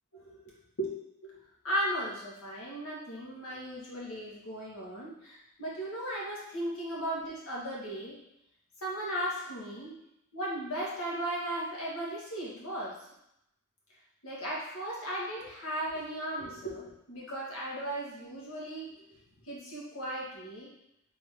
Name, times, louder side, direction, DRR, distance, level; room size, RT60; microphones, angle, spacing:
voice 1, 1.6-8.2 8.8-9.9 10.3-13.0 14.2-18.9 19.4-20.7, right 1 dB, 80° left, -5 dB, 1.5 m, -36 dB
3.9 x 3.6 x 3.6 m, 0.80 s
head